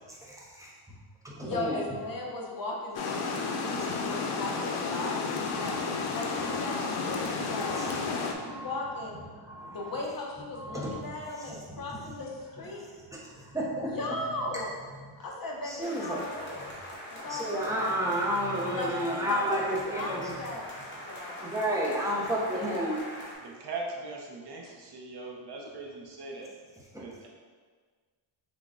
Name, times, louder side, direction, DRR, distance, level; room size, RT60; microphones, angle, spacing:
voice 1, 0.3-1.0 1.2-1.8 3.7-3.9 5.4-5.8 6.4-6.9 7.4-9.0 9.4-10.0 10.5-11.1 11.4-12.0 13.1-14.0 14.9-15.1 15.6-16.3 17.3-20.4 21.4-23.0 26.9-27.0, right 1 dB, 5° right, -4 dB, 0.6 m, -33 dB
voice 2, 1.4-5.8 6.1-9.2 9.7-12.9 13.9-14.8 15.2-16.7 17.1-17.7 18.7-20.7 21.0-21.8, left 2 dB, 45° left, -2 dB, 0.7 m, -37 dB
Water, 2.9-8.3, left 4 dB, 90° left, 0.6 m, -32 dB
sound 1, 15.8-23.3, equal, 25° left, 0.9 m, -43 dB
voice 3, 23.4-26.5 27.0-27.3, right 3 dB, 55° right, 0 dB, 0.7 m, -40 dB
6.0 x 2.2 x 3.6 m, 1.5 s
wide cardioid pair, 165°, 48 cm